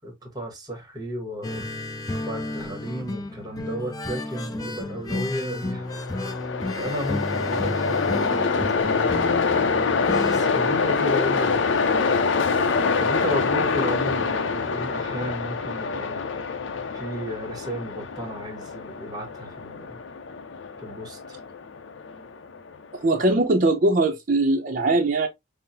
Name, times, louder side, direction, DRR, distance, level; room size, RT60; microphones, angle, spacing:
voice 1, 0.0-1.6 2.3-5.9 6.8-9.7 10.2-12.2 13.0-16.2 16.9-20.0 20.8-21.4, equal, 20° right, 1.2 m, -34 dB
sound 1, 1.4-10.4, left 1 dB, 20° left, 0.5 m, -32 dB
Train, 5.6-22.8, left 4 dB, 75° left, 0.5 m, -25 dB
voice 2, 22.9-25.3, right 2 dB, 45° right, 0.5 m, -21 dB
5.4 x 2.0 x 2.7 m
head